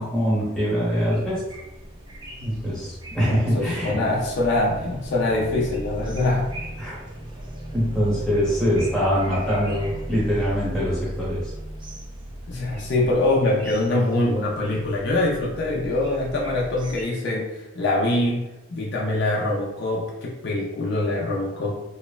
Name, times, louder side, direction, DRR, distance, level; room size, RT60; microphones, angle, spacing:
voice 1, 0.0-1.4 2.4-4.0 6.8-6.9 7.7-11.5, equal, 5° left, -8 dB, 0.8 m, -23 dB
sound 1, 0.8-17.0, right 1 dB, 25° right, 0.3 m, -37 dB
voice 2, 3.3-6.5 12.5-21.7, left 2 dB, 55° left, -3 dB, 0.4 m, -24 dB
3.0 x 2.0 x 2.3 m, 1.0 s
head